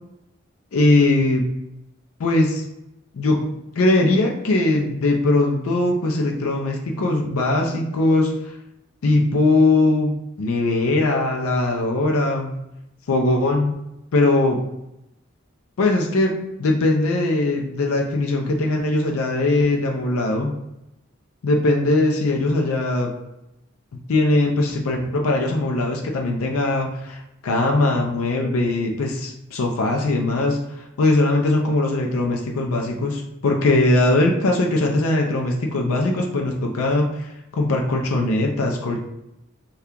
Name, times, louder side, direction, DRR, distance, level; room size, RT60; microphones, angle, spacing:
voice 1, 0.7-1.5 2.2-2.6 3.1-8.3 9.0-12.5 13.1-13.7 14.1-14.6 15.8-20.6 21.4-23.1 23.9-30.6 31.0-39.0, left 2 dB, 85° left, 1 dB, 0.4 m, -20 dB
2.8 x 2.3 x 3.5 m, 0.89 s
head